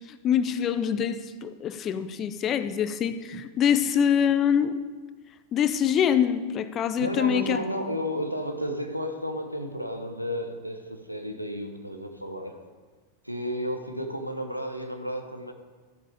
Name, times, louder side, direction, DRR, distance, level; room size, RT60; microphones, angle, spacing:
voice 1, 0.0-4.8 5.5-7.6, left 8 dB, 30° left, 12 dB, 0.7 m, -25 dB
voice 2, 7.0-12.6 13.2-15.5, equal, 90° right, 5 dB, 1.1 m, -32 dB
13.0 x 7.5 x 5.1 m, 1.4 s
figure-of-eight pair, 90°, 0 cm